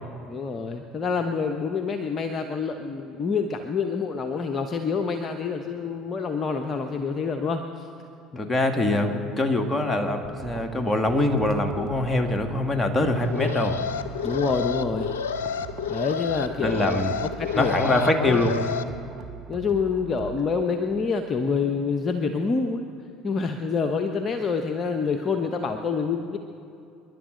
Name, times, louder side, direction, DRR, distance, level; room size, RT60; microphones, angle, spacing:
voice 1, 0.3-7.9 14.2-15.1 15.9-18.5 19.5-22.8 23.2-26.4, left 5 dB, 40° left, 5 dB, 1.0 m, -27 dB
voice 2, 8.4-13.8 16.6-17.1 17.5-18.6, left 1 dB, 15° left, 4 dB, 2.0 m, -23 dB
sound 1, 10.2-20.6, right 9 dB, 55° right, 1.2 m, -42 dB
Alarm, 13.2-18.8, left 7 dB, 80° left, 0.6 m, -30 dB
28.5 x 11.0 x 3.9 m, 2.6 s
hypercardioid pair, 65°, 0 cm